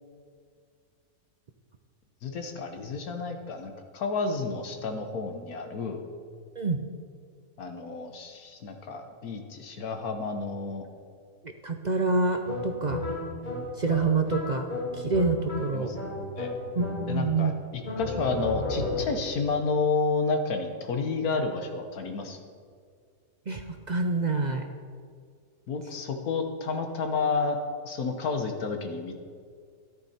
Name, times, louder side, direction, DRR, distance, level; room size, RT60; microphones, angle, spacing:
voice 1, 2.2-6.0 7.6-10.8 15.7-16.0 16.4-16.5 17.1-22.4 25.7-27.6 27.8-29.1, left 4 dB, 75° left, 5 dB, 1.6 m, -30 dB
voice 2, 11.4-13.0 13.8-14.7 14.9-15.9 16.7-17.5 23.5-24.6, right 3 dB, 45° right, 5 dB, 0.6 m, -27 dB
sound 1, 12.5-17.4 17.8-19.4, left 2 dB, 30° left, 2.1 m, -34 dB
13.5 x 11.0 x 4.3 m, 2.1 s
omnidirectional pair, 1.6 m